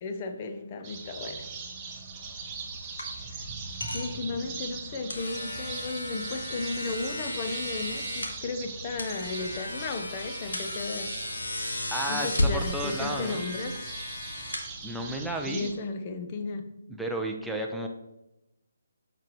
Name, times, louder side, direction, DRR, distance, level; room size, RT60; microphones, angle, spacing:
voice 1, 0.0-1.5 3.3-3.4 3.9-13.8 15.4-16.6, left 3 dB, 30° left, 7 dB, 0.8 m, -35 dB
sound 1, 0.8-15.7, right 4 dB, 15° right, 1.1 m, -41 dB
sound 2, 2.0-15.3, left 1 dB, 90° left, 1.6 m, -35 dB
voice 2, 11.9-13.4 14.8-15.8 16.9-17.9, right 1 dB, ahead, 1 dB, 0.6 m, -33 dB
7.6 x 7.0 x 3.1 m, 0.93 s
hypercardioid pair, 160°, 0 cm